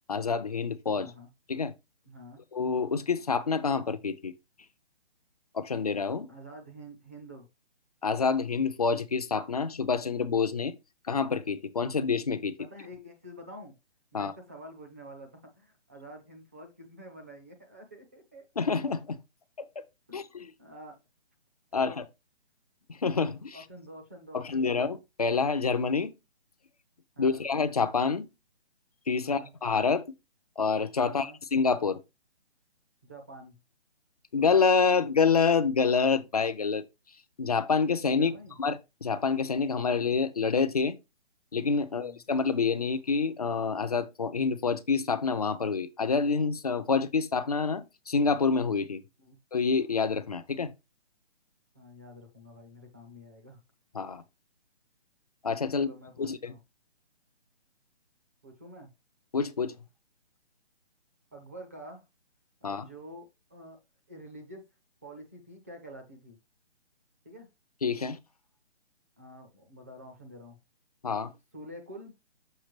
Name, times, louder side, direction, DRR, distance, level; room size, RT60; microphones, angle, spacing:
voice 1, 0.1-1.1 1.5-1.7 2.5-4.3 5.5-6.3 8.0-10.7 11.1-12.5 14.1-14.3 18.6-19.2 20.1-20.5 21.7-22.0 22.9-23.6 24.3-26.1 27.2-28.3 29.1-30.0 30.6-32.0 34.3-36.8 37.4-38.3 38.6-41.0 41.5-49.0 49.5-50.7 53.9-54.2 55.4-55.9 56.2-56.5 59.3-59.7 62.6-62.9 67.8-68.2 71.0-71.3, left 5 dB, 35° left, 0.4 m, -27 dB
voice 2, 0.9-1.3 2.1-2.4 6.3-7.5 12.6-13.7 14.1-18.5 20.1-21.0 21.7-22.0 23.5-24.8 27.2-27.4 29.2-29.5 31.0-31.4 33.0-33.6 38.2-38.6 41.8-42.2 49.2-49.4 51.7-53.6 55.7-56.6 58.4-58.9 61.3-62.0 62.6-63.8 64.1-64.7 65.0-66.4 67.2-67.5 69.2-70.6 71.5-72.1, equal, 15° right, 0.5 m, -48 dB
6.6 x 5.7 x 3.0 m
hypercardioid pair, 165°, 34 cm